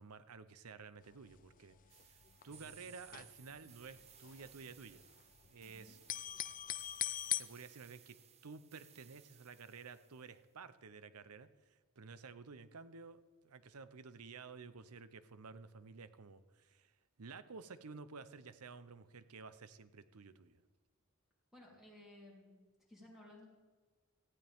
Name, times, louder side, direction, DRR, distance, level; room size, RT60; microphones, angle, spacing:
voice 1, 0.0-1.8 2.1-2.2 2.4-5.0 5.5-6.0 7.3-8.2 8.4-16.9 17.2-20.6, right 4 dB, 90° right, 13 dB, 0.8 m, -53 dB
sound 1, 1.0-1.5 1.7-1.8 2.0-3.7 4.0-5.6 5.9-7.4, left 12 dB, 35° left, 0.4 m, -41 dB
sound 2, 1.9-10.4, right 9 dB, 30° right, 0.6 m, -62 dB
voice 2, 5.6-6.0 21.5-23.5, left 1 dB, ahead, -5 dB, 3.5 m, -58 dB
18.5 x 14.5 x 3.6 m, 1.4 s
head